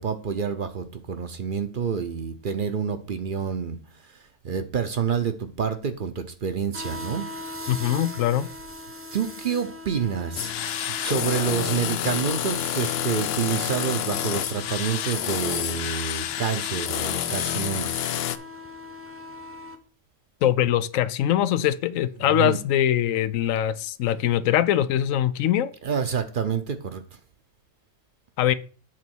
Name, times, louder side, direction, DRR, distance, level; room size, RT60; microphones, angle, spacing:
voice 1, 0.0-3.8 4.0-7.3 7.6-7.7 9.1-10.5 11.0-18.1 22.3-22.6 25.8-27.0, right 7 dB, 50° right, 0.7 m, -28 dB
sound 1, 6.7-19.8, left 2 dB, 15° right, 0.7 m, -40 dB
voice 2, 7.7-8.5 20.4-25.7 28.4-28.5, left 11 dB, 90° left, 1.0 m, -22 dB
sound 2, 10.4-18.4, left 11 dB, 65° left, 0.7 m, -28 dB
7.6 x 4.1 x 6.0 m
omnidirectional pair, 1.3 m